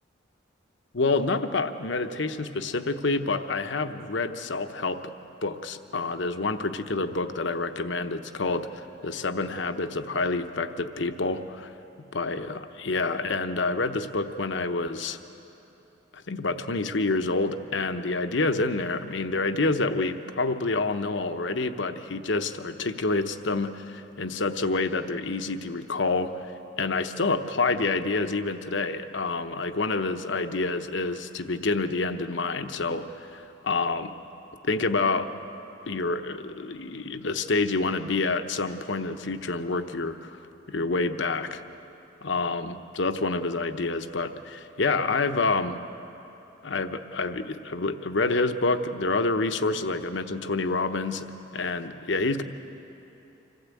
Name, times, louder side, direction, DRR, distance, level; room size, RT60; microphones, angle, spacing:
voice 1, 0.9-5.1 5.4-11.7 12.1-15.2 16.1-26.5 26.8-34.1 34.6-35.3 35.9-41.6 42.2-45.8 46.6-51.3 51.5-52.4, left 3 dB, 65° left, 9 dB, 0.9 m, -28 dB
26.0 x 15.5 x 8.4 m, 3.0 s
head